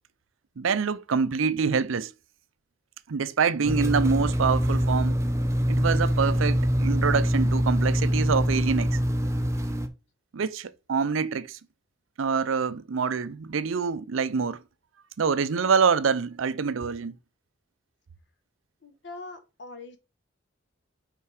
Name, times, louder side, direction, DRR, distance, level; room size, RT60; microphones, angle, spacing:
voice 1, 0.6-2.1 3.1-5.2 5.7-9.0 10.3-11.6 12.2-14.6 15.2-17.2, right 5 dB, 85° right, 0.5 m, -26 dB
sound 1, 3.6-9.9, equal, 15° right, 0.6 m, -24 dB
voice 2, 18.8-20.0, left 3 dB, 60° left, 1.2 m, -42 dB
5.6 x 4.6 x 4.8 m
head